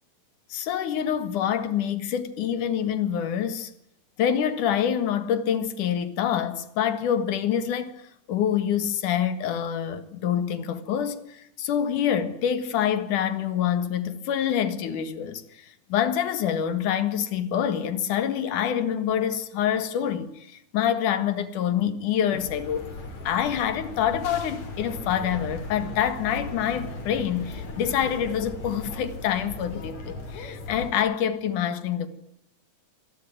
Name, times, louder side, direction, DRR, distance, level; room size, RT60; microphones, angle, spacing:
voice 1, 0.5-3.7 4.2-22.9 23.2-32.1, left 9 dB, 80° left, 3.1 m, -26 dB
sound 1, 22.4-30.9, left 3 dB, 60° left, 5.0 m, -37 dB
27.0 x 21.5 x 9.3 m
omnidirectional pair, 3.6 m